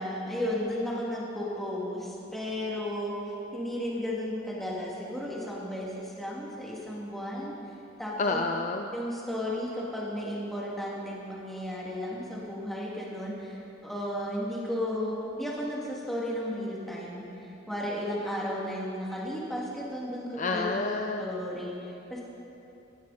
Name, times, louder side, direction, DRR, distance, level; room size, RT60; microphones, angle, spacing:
voice 1, 0.0-3.1 3.5-7.5 8.0-8.4 8.9-20.8 21.2-22.2, left 1 dB, ahead, -6 dB, 2.7 m, -34 dB
voice 2, 8.2-8.9 20.4-21.3, left 3 dB, 40° left, 4 dB, 0.6 m, -29 dB
16.0 x 16.0 x 4.3 m, 2.9 s
head